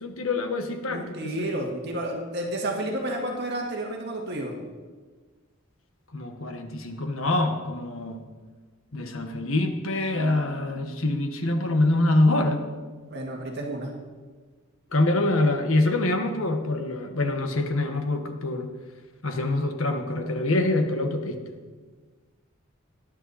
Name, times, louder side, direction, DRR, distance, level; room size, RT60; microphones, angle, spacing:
voice 1, 0.0-1.5 6.1-8.2 8.9-12.7 14.9-18.7 19.2-21.4, left 2 dB, 65° left, 5 dB, 1.4 m, -25 dB
voice 2, 0.9-4.5 13.1-13.9, right 1 dB, 50° right, 1 dB, 2.0 m, -31 dB
18.5 x 10.5 x 4.2 m, 1.4 s
head